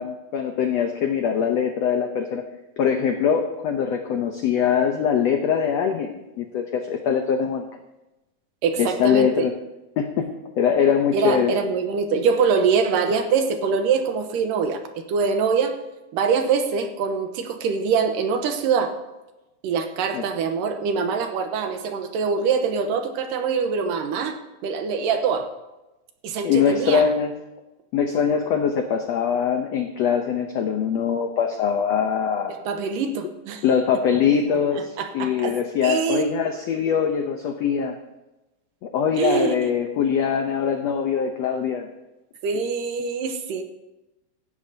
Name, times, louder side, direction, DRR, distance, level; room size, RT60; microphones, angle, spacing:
voice 1, 0.0-2.4 2.8-7.7 8.8-9.5 10.0-11.6 20.1-20.2 26.4-27.3 27.9-32.5 33.6-38.0 38.8-41.9, left 7 dB, 85° left, 5 dB, 1.4 m, -22 dB
voice 2, 8.6-9.5 11.1-15.7 16.1-18.9 19.6-24.4 24.6-25.5 26.2-27.1 32.5-33.6 34.7-36.5 39.2-39.7 42.4-43.6, right 5 dB, 75° right, 6 dB, 2.6 m, -24 dB
16.5 x 14.0 x 2.8 m, 1.0 s
omnidirectional pair, 4.1 m